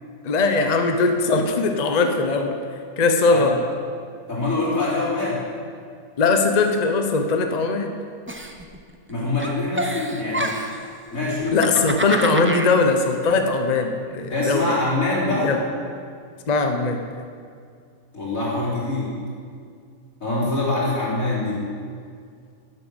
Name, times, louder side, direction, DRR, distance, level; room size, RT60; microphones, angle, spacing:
voice 1, 0.2-2.6 3.0-3.6 6.2-8.0 11.5-14.7 15.3-15.6 16.5-17.0, left 3 dB, 35° left, 5 dB, 0.8 m, -20 dB
voice 2, 4.3-5.4 9.1-10.5 11.1-11.6 14.3-15.5 18.1-19.1 20.2-21.6, left 2 dB, 90° left, -7 dB, 4.1 m, -24 dB
Giggle, 8.3-9.1 9.4-10.9 11.4-12.7, right 1 dB, 15° right, 0.4 m, -28 dB
11.0 x 7.8 x 8.0 m, 2.2 s
omnidirectional pair, 1.4 m